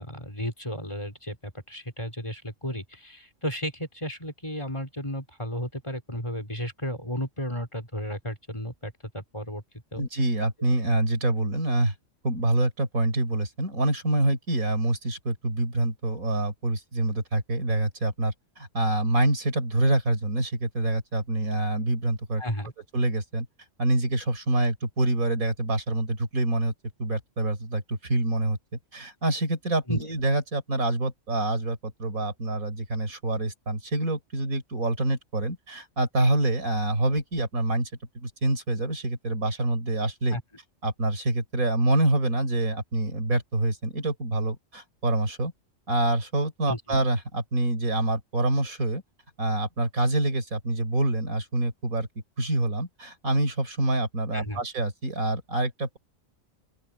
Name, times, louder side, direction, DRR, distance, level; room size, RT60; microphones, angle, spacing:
voice 1, 0.0-9.6 9.9-10.1 22.4-22.7 29.9-30.0 40.3-40.4 46.7-46.8 54.3-54.6, equal, 20° left, 4.3 m, -33 dB
voice 2, 9.9-11.9 12.2-22.4 22.9-23.5 23.8-26.7 27.0-28.6 28.9-37.9 38.1-40.4 40.8-45.5 45.9-49.0 49.4-52.1 52.4-56.0, right 2 dB, 85° right, 4.9 m, -26 dB
open air
omnidirectional pair, 1.4 m